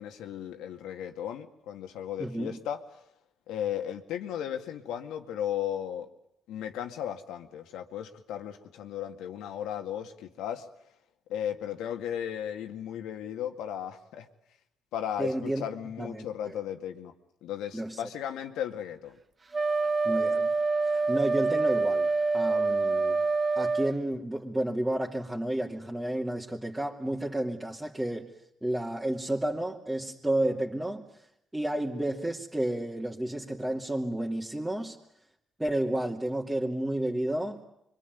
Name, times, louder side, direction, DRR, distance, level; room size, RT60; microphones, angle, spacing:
voice 1, 0.0-2.8 3.5-6.1 6.5-10.7 11.3-14.3 14.9-17.1 17.4-19.2, left 10 dB, 90° left, 6 dB, 2.1 m, -35 dB
voice 2, 2.2-2.6 15.2-15.6 16.0-16.6 17.7-18.0 20.0-20.5 20.9-23.2 23.6-28.3 28.6-31.1 31.5-35.0 35.6-37.6, right 1 dB, 10° right, -3 dB, 2.6 m, -31 dB
Wind instrument woodwind instrument, 19.5-24.0, right 3 dB, 30° right, 1.1 m, -26 dB
26.0 x 24.0 x 9.4 m, 0.80 s
cardioid pair, 90°, 0 cm